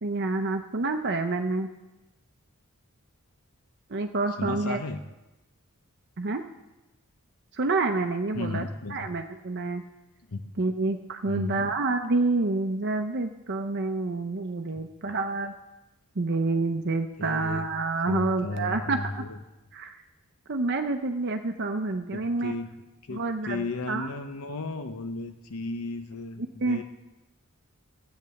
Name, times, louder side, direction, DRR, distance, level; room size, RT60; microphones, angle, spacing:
voice 1, 0.0-1.7 3.9-4.8 6.2-6.4 7.5-8.6 8.9-9.8 10.6-15.5 16.2-19.2 19.7-20.0 20.5-22.5 23.1-24.1 26.6-26.8, right 3 dB, 50° right, 6 dB, 0.7 m, -28 dB
voice 2, 4.4-5.0 8.3-9.1 10.3-10.6 11.3-11.7 17.2-17.7 18.1-19.4 22.1-26.8, left 3 dB, 80° left, 7 dB, 0.9 m, -34 dB
14.0 x 9.0 x 7.0 m, 1.0 s
head